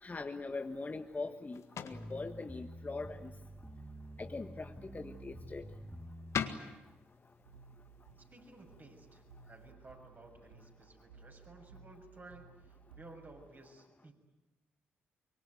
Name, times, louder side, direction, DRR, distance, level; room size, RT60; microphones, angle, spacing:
voice 1, 0.0-3.3 4.2-5.7, left 3 dB, 30° left, 7 dB, 1.4 m, -42 dB
sound 1, 0.6-9.7, left 7 dB, 60° left, 1.7 m, -46 dB
sound 2, 1.9-6.5, equal, ahead, 3.9 m, -48 dB
sound 3, 7.4-13.5, right 5 dB, 85° right, 1.2 m, -59 dB
voice 2, 8.2-14.1, right 2 dB, 35° right, 3 dB, 6.8 m, -56 dB
24.5 x 23.5 x 9.5 m, 1.1 s
hypercardioid pair, 40°, 6 cm